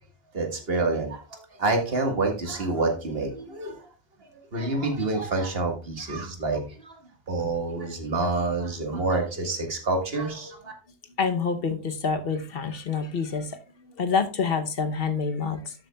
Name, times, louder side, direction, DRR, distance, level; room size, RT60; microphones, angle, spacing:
voice 1, 0.3-3.8 4.5-7.0 7.3-10.7, right 3 dB, 50° right, 3 dB, 1.9 m, -27 dB
voice 2, 11.2-13.6 14.0-15.7, left 5 dB, 50° left, 8 dB, 1.0 m, -27 dB
12.5 x 7.1 x 2.3 m, 0.33 s
omnidirectional pair, 1.3 m